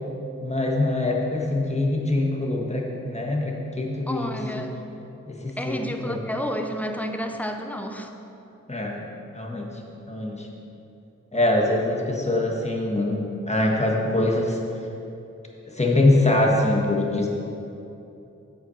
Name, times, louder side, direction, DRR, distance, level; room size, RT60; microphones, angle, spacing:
voice 1, 0.4-4.7 5.3-6.2 8.7-9.0 9.3-9.7 10.1-10.5 11.3-14.6 15.7-17.3, left 2 dB, 20° left, -1 dB, 1.4 m, -23 dB
voice 2, 4.1-4.8 5.6-8.1, equal, 5° left, 5 dB, 0.7 m, -30 dB
7.8 x 5.7 x 5.7 m, 2.8 s
cardioid pair, 50°, 29 cm